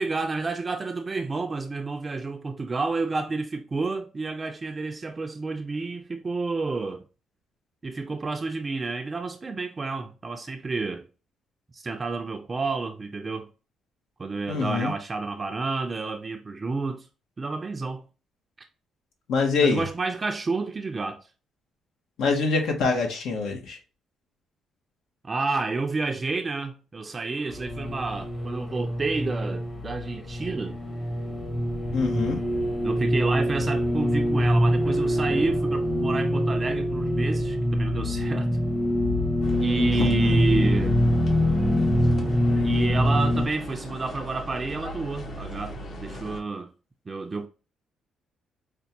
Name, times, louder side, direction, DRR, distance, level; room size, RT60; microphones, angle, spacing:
voice 1, 0.0-7.0 7.8-11.0 11.7-13.5 14.2-17.1 17.4-18.0 19.6-21.2 25.2-30.8 32.8-38.5 39.6-41.0 42.6-46.7 47.1-47.5, right 3 dB, 30° right, 0.4 m, -30 dB
voice 2, 14.5-14.9 19.3-19.8 22.2-23.8 31.9-32.4 40.0-40.1, left 4 dB, 75° left, 0.9 m, -24 dB
sound 1, 27.5-43.5, equal, 35° left, 1.0 m, -24 dB
sound 2, 39.4-46.4, equal, 60° left, 1.1 m, -39 dB
5.2 x 2.2 x 2.8 m
cardioid pair, 95°, 0 cm